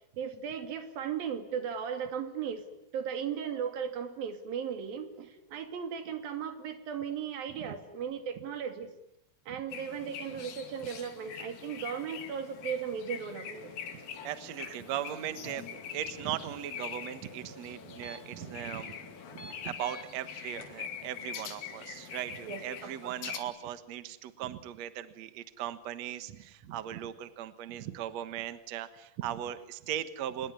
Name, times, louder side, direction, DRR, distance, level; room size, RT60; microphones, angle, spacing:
voice 1, 0.2-2.7 2.9-8.9 9.5-13.7 14.6-14.7 22.5-23.2, right 7 dB, 80° right, 7 dB, 4.3 m, -36 dB
sound 1, 9.7-23.4, left 8 dB, 85° left, 4.2 m, -44 dB
sound 2, 13.5-20.1 20.5-22.9, left 3 dB, 45° left, 5.1 m, -51 dB
voice 2, 13.9-15.6 15.9-19.0 19.3-30.5, right 11 dB, 60° right, 12 dB, 2.2 m, -38 dB
27.0 x 21.0 x 9.7 m, 0.79 s
omnidirectional pair, 4.0 m